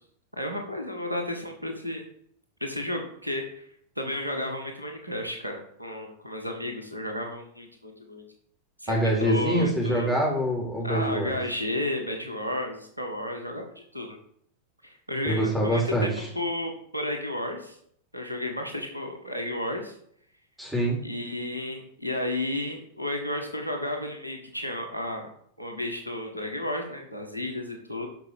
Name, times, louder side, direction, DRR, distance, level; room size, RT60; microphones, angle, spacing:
voice 1, 0.3-2.0 2.6-3.6 3.9-8.2 8.8-10.1 10.8-14.2 14.8-17.8 18.1-19.9 21.0-25.3 25.6-28.1, left 1 dB, 85° right, 3 dB, 1.8 m, -32 dB
voice 2, 8.9-11.4 15.2-16.3 20.6-21.0, right 1 dB, 5° right, -2 dB, 4.3 m, -25 dB
13.0 x 5.7 x 5.3 m, 0.65 s
figure-of-eight pair, 90°, 0 cm